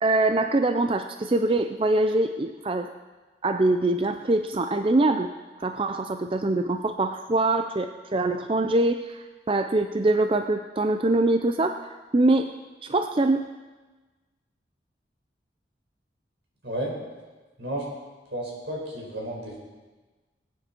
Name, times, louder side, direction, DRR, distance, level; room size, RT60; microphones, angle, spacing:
voice 1, 0.0-2.9 3.4-5.3 5.6-12.5 12.8-13.4, right 2 dB, 30° right, 7 dB, 0.4 m, -24 dB
voice 2, 18.3-19.6, right 1 dB, 80° right, -3 dB, 4.9 m, -32 dB
20.0 x 9.4 x 4.4 m, 1.3 s
head